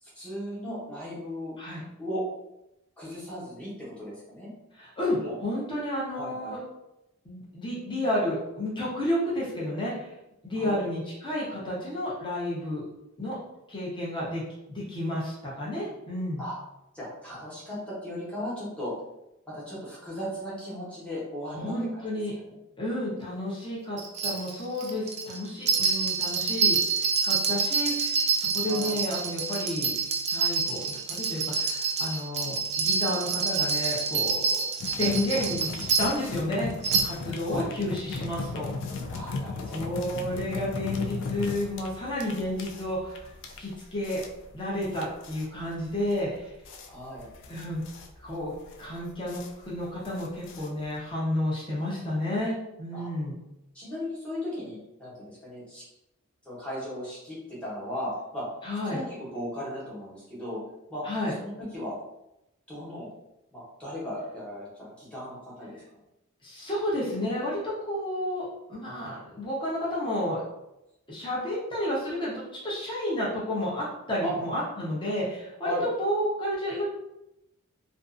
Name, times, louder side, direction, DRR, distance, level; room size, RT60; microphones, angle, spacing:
voice 1, 0.0-1.5 2.0-2.2 3.0-4.5 5.2-5.3 6.1-6.5 10.5-10.8 16.4-16.5 16.9-18.9 19.5-21.6 21.9-22.0 22.5-22.6 28.7-28.9 37.4-37.7 39.1-39.9 46.9-47.3 52.9-53.1 53.7-55.8 56.4-58.4 58.8-60.6 60.9-61.0 61.4-61.9 62.7-63.1 63.5-65.7 74.2-74.3 75.6-75.9, equal, 5° left, -9 dB, 1.0 m, -36 dB
voice 2, 4.8-6.6 7.2-10.1 10.4-12.8 13.2-13.4 13.7-14.4 14.7-16.4 21.5-22.4 22.8-36.7 37.0-38.7 39.7-44.2 44.5-46.5 47.5-47.8 48.2-48.5 48.8-53.4 58.6-59.0 61.0-61.3 66.4-70.4 71.1-76.9, left 1 dB, 20° left, -6 dB, 0.7 m, -31 dB
sound 1, 24.0-36.3 36.8-37.0, right 5 dB, 30° right, 0.3 m, -27 dB
sound 2, 34.8-51.1, left 4 dB, 60° left, 0.3 m, -37 dB
2.5 x 2.4 x 2.4 m, 0.89 s
head